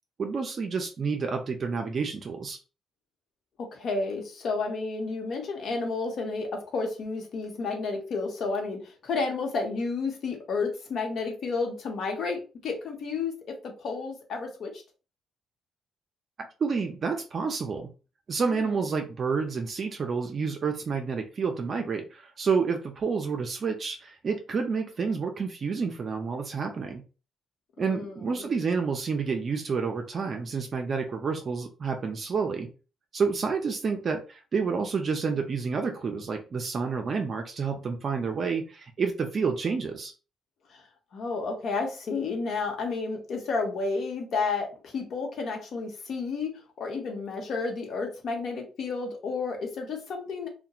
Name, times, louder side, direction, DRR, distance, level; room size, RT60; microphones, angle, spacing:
voice 1, 0.2-2.6 16.6-17.9 18.3-27.0 27.8-32.7 33.1-40.1, right 5 dB, 45° right, 4 dB, 0.4 m, -29 dB
voice 2, 3.6-14.7 18.5-18.7 27.8-28.5 40.7-40.8 41.1-46.5 46.8-50.5, left 4 dB, 65° left, 3 dB, 0.8 m, -31 dB
2.8 x 2.1 x 2.3 m, 0.34 s
cardioid pair, 90°, 0 cm